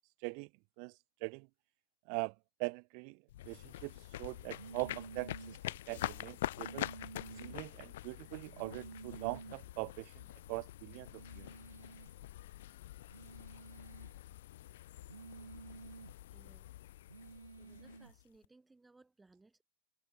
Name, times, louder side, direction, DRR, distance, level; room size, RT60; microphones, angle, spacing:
voice 1, 2.6-3.2 3.4-3.9 4.2-6.9 7.4-10.1 10.5-11.1 11.3-11.5, right 40 dB or more, 45° right, 0.7 m, -41 dB
sound 1, 3.3-18.4, left 14 dB, 55° left, 0.7 m, -46 dB
sound 2, 4.5-5.6 6.5-7.6 8.6-9.6 11.1-12.1 13.1-14.1 15.1-16.1 17.1-18.1, right 4 dB, 75° right, 5.9 m, -51 dB
voice 2, 16.3-16.7 17.6-19.6, right 3 dB, 10° right, 7.8 m, -64 dB
figure-of-eight pair, 90°, 0 cm